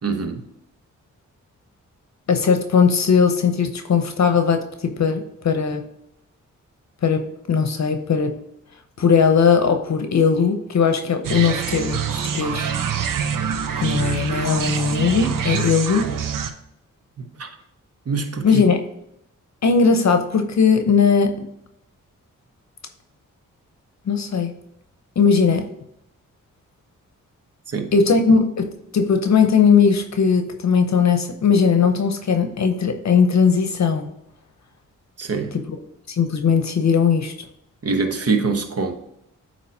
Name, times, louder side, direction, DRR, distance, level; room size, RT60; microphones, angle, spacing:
voice 1, 0.0-0.4 17.2-17.5 18.1-18.5 27.7-27.9 35.2-35.5 37.8-38.9, right 4 dB, 50° right, 7 dB, 1.0 m, -24 dB
voice 2, 2.3-5.8 7.0-8.4 9.0-12.7 13.8-16.1 18.4-18.8 19.6-21.5 24.1-24.5 25.2-25.7 27.9-34.1 35.5-35.6 36.1-37.3, left 6 dB, 55° left, 6 dB, 0.7 m, -18 dB
sound 1, 11.2-16.5, right 7 dB, 80° right, 0.6 m, -25 dB
8.4 x 3.1 x 4.2 m, 0.81 s
cardioid pair, 55°, 32 cm